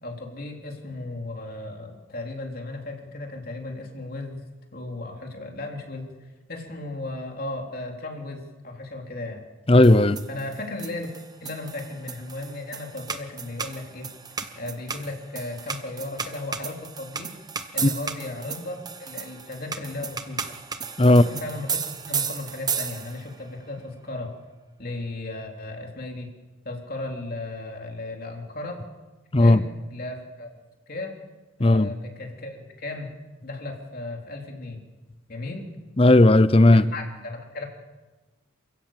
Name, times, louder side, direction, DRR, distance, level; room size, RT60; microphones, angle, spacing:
voice 1, 0.0-4.4 4.7-9.4 10.3-11.1 11.4-14.1 14.5-17.3 17.7-20.6 21.0-24.3 24.8-26.3 26.7-28.8 29.4-29.6 29.9-30.5 30.9-31.1 31.6-33.1 33.4-34.8 35.3-35.7 36.7-37.7, left 2 dB, 45° left, 3.6 m, -35 dB
voice 2, 9.7-10.2 17.8-17.9 21.0-21.2 29.3-29.6 31.6-31.9 36.0-36.9, left 1 dB, 30° left, 0.6 m, -15 dB
sound 1, 9.8-23.4, right 6 dB, 20° right, 1.1 m, -34 dB
28.5 x 16.0 x 7.4 m
head